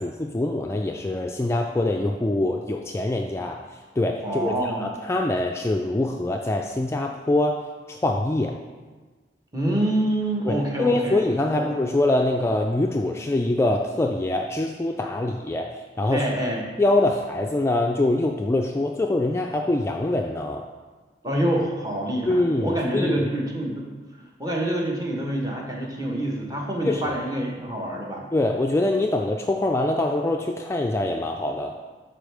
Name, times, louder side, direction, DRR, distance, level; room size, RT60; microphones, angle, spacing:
voice 1, 0.0-3.6 4.0-7.6 7.9-8.5 10.5-16.3 16.8-20.7 22.3-23.3 26.8-27.2 28.3-31.8, left 2 dB, 15° left, 2 dB, 0.3 m, -24 dB
voice 2, 4.2-4.9 9.5-11.2 11.5-11.6 16.1-16.7 21.2-23.9 24.4-28.3, right 1 dB, 20° right, -1 dB, 1.2 m, -26 dB
11.0 x 4.3 x 3.4 m, 1.4 s
head